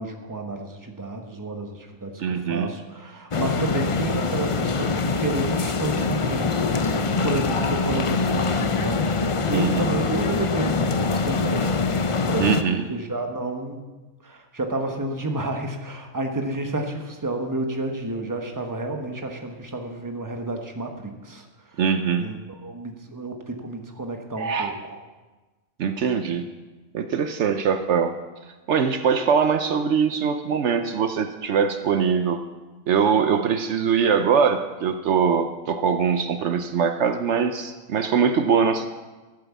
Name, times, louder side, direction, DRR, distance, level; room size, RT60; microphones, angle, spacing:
voice 1, 0.0-11.8 12.3-12.6 12.9-13.8 14.2-21.5 22.2-25.0, right 2 dB, 15° right, 4 dB, 1.3 m, -30 dB
voice 2, 2.2-2.7 9.5-9.9 12.4-12.8 21.8-22.3 24.4-24.8 25.8-26.4 26.9-28.1 28.7-32.4 32.9-38.9, right 6 dB, 70° right, 8 dB, 1.0 m, -22 dB
sound 1, 3.3-12.6, left 4 dB, 40° left, 0.5 m, -24 dB
13.0 x 8.8 x 7.2 m, 1.2 s
omnidirectional pair, 1.3 m